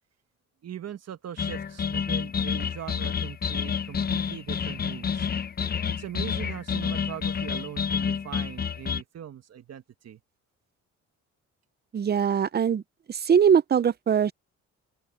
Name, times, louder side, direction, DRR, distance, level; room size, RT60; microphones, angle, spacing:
voice 1, 0.6-5.3 5.9-10.2, right 10 dB, 55° right, 1.6 m, -40 dB
sound 1, 1.4-9.0, left 6 dB, 30° left, 0.7 m, -29 dB
voice 2, 11.9-12.8 13.1-14.3, right 7 dB, 35° right, 0.6 m, -21 dB
open air
cardioid pair, 90°, 30 cm